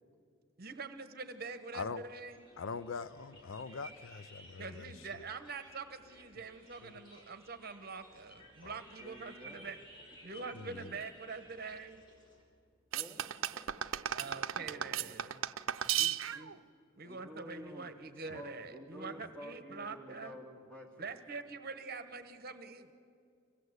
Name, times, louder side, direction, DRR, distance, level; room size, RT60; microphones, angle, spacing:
voice 1, 0.6-2.4 4.6-9.8 10.2-12.0 14.1-15.4 15.8-16.6 17.0-20.4 21.0-22.9, right 4 dB, 50° right, 10 dB, 1.1 m, -45 dB
sound 1, 2.3-12.4, right 1 dB, 25° left, 4.8 m, -57 dB
voice 2, 2.6-4.9 6.8-7.0 8.6-8.7 10.6-10.9 18.3-18.4, left 5 dB, 75° left, 15 dB, 0.5 m, -42 dB
voice 3, 9.0-9.7 10.4-11.0 12.9-15.2 17.0-17.9 18.3-21.1, equal, 5° left, -1 dB, 2.7 m, -51 dB
sound 2, 12.9-16.6, right 10 dB, 85° right, 0.6 m, -35 dB
25.0 x 17.0 x 8.0 m, 2.4 s
head